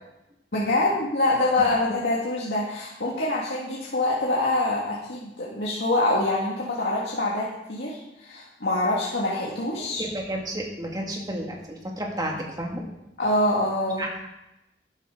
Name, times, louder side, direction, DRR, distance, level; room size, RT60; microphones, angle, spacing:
voice 1, 0.5-10.0 13.2-14.0, left 2 dB, 75° left, -5 dB, 2.0 m, -25 dB
voice 2, 10.0-12.8 14.0-14.3, right 1 dB, 25° right, 0 dB, 2.1 m, -32 dB
12.5 x 11.0 x 3.8 m, 0.91 s
head